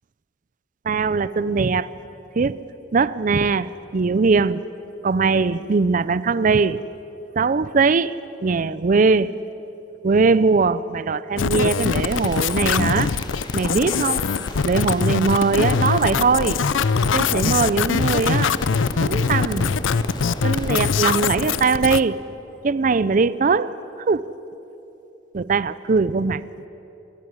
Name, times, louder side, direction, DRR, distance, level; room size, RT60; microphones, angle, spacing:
voice 1, 0.8-1.9 2.4-2.6 2.9-4.6 5.0-6.8 7.4-9.4 10.0-13.1 13.5-14.3 14.7-16.6 17.1-18.6 19.0-19.7 20.4-22.2 22.6-23.7 24.1-24.3 25.3-26.4, right 4 dB, 45° right, 0.5 m, -20 dB
sound 1, 11.4-22.0, left 6 dB, 80° left, 0.5 m, -22 dB
sound 2, 11.8-21.7, equal, 25° left, 2.5 m, -35 dB
21.0 x 15.5 x 9.6 m
head